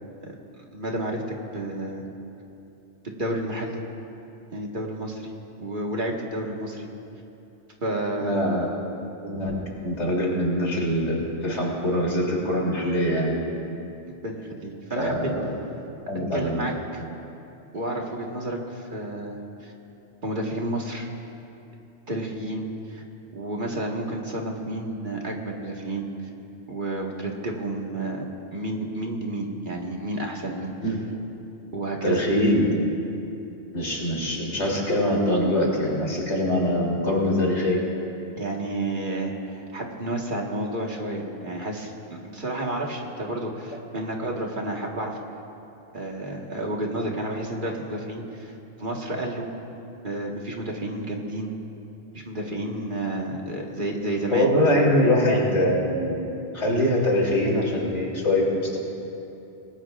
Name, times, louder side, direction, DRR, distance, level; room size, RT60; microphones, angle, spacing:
voice 1, 0.7-2.1 3.0-3.8 4.5-5.3 5.6-6.9 7.8-8.4 14.2-15.3 16.3-17.0 17.7-19.7 20.2-21.1 22.1-23.0 23.3-26.1 26.7-30.7 31.7-32.2 38.4-45.2 45.9-48.5 48.8-49.5 50.0-51.5 52.1-54.5, right 1 dB, 45° right, -1 dB, 1.8 m, -31 dB
voice 2, 8.2-8.7 9.2-13.4 15.0-15.5 16.1-16.7 30.8-31.0 32.0-32.9 33.7-37.8 54.3-58.8, left 1 dB, 90° left, -3 dB, 3.6 m, -23 dB
26.5 x 19.5 x 2.5 m, 2.8 s
omnidirectional pair, 1.1 m